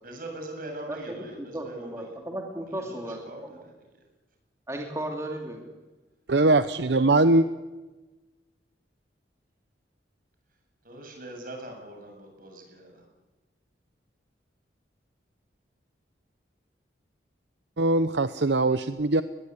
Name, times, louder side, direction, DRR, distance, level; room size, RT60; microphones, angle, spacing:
voice 1, 0.0-2.1 2.6-4.0 6.9-7.3 10.8-13.1, right 1 dB, 50° right, 3 dB, 8.0 m, -42 dB
voice 2, 0.9-3.6 4.7-5.7, right 1 dB, 15° right, 1 dB, 2.7 m, -35 dB
voice 3, 6.3-7.4 17.8-19.2, right 2 dB, 70° right, 11 dB, 0.8 m, -21 dB
22.0 x 21.0 x 9.8 m, 1.2 s
head